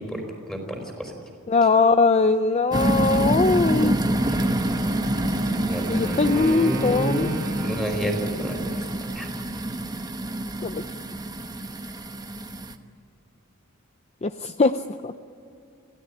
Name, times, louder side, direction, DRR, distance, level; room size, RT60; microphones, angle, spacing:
voice 1, 0.1-1.1 5.7-8.8 9.1-9.3, right 1 dB, 5° left, 3 dB, 4.6 m, -30 dB
voice 2, 1.5-4.0 5.9-7.3 10.6-10.8 14.2-14.7 15.0-15.2, left 3 dB, 30° left, 10 dB, 0.5 m, -21 dB
sound 1, 2.7-12.7, right 1 dB, 20° right, 1.1 m, -26 dB
Wind instrument woodwind instrument, 4.0-8.9, right 2 dB, 85° right, 2.4 m, -39 dB
26.5 x 16.5 x 9.8 m, 2.7 s
head